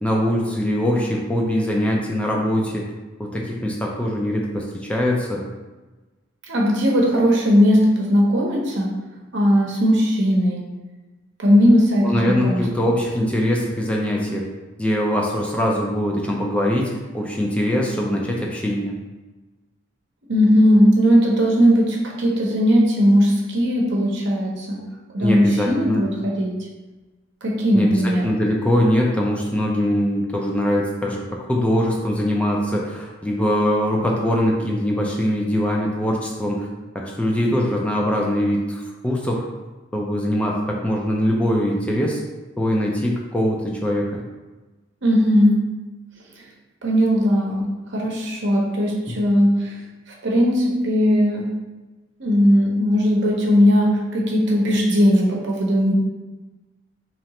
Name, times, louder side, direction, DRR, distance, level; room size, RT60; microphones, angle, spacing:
voice 1, 0.0-2.8 3.2-5.4 12.0-14.5 14.8-19.0 25.2-26.0 27.7-36.7 36.9-39.4 39.9-42.2 42.6-44.2 49.1-49.2, equal, 5° left, -2 dB, 0.4 m, -22 dB
voice 2, 6.5-8.9 9.3-10.7 11.4-12.6 20.3-24.8 25.1-26.5 27.4-28.2 45.0-45.8 46.8-49.8 50.2-51.5 52.2-55.9, equal, 65° right, -2 dB, 0.8 m, -18 dB
3.1 x 2.9 x 4.1 m, 1.2 s
head